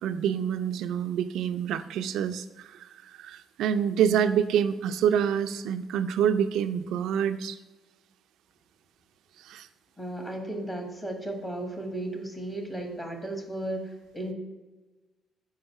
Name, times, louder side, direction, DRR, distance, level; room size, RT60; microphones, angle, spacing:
voice 1, 0.0-7.6 9.4-9.7, right 8 dB, 85° right, 10 dB, 0.5 m, -27 dB
voice 2, 10.0-14.3, right 1 dB, 20° left, 2 dB, 1.6 m, -35 dB
6.5 x 4.6 x 5.9 m, 1.2 s
cardioid pair, 90°, 0 cm